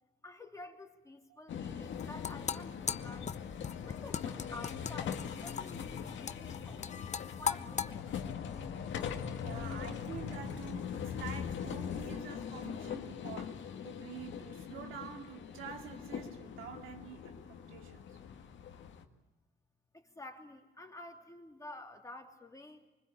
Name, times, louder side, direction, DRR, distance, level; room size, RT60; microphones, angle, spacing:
voice 1, 0.2-3.3 3.8-7.0 7.4-8.1 19.9-22.8, left 2 dB, 15° left, 3.2 m, -50 dB
sound 1, 1.5-19.0, left 7 dB, 70° left, 1.9 m, -41 dB
sound 2, 1.8-7.9, left 7 dB, 35° left, 0.8 m, -39 dB
voice 2, 9.4-18.1, right 8 dB, 85° right, 2.6 m, -47 dB
25.0 x 20.5 x 8.6 m
cardioid pair, 90°, 20 cm